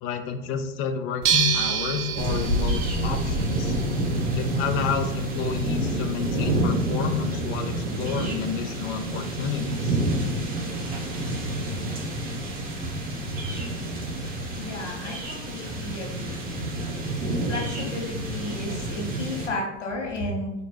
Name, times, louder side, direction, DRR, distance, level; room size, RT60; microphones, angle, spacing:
voice 1, 0.0-3.8 4.3-10.0, left 7 dB, 35° left, 7 dB, 0.5 m, -30 dB
sound 1, 1.2-6.6, right 7 dB, 70° right, 0.6 m, -29 dB
sound 2, 2.2-19.5, right 1 dB, 25° right, 0.9 m, -28 dB
voice 2, 14.6-16.5 17.5-20.5, left 2 dB, 90° left, 0 dB, 1.2 m, -33 dB
2.9 x 2.7 x 4.2 m, 0.92 s
hypercardioid pair, 105°, 36 cm